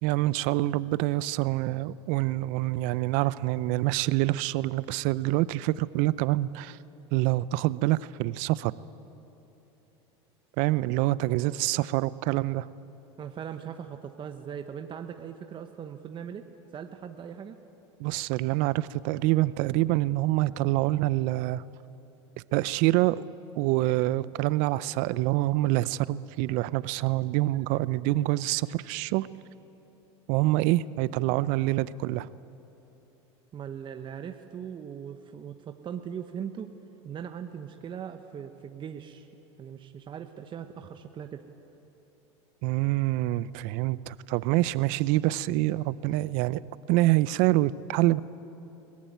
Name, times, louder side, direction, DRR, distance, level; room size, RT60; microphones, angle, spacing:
voice 1, 0.0-6.8 7.1-8.7 10.6-12.7 18.0-21.6 22.5-23.2 23.6-29.3 30.3-32.3 42.6-46.6 46.9-48.2, right 17 dB, 60° right, 18 dB, 0.6 m, -26 dB
voice 2, 11.3-11.9 13.2-16.5 16.7-17.6 33.5-36.7 37.0-39.3 39.6-41.4, right 8 dB, 35° right, 6 dB, 1.1 m, -40 dB
22.0 x 18.5 x 9.3 m, 3.0 s
hypercardioid pair, 95°, 15 cm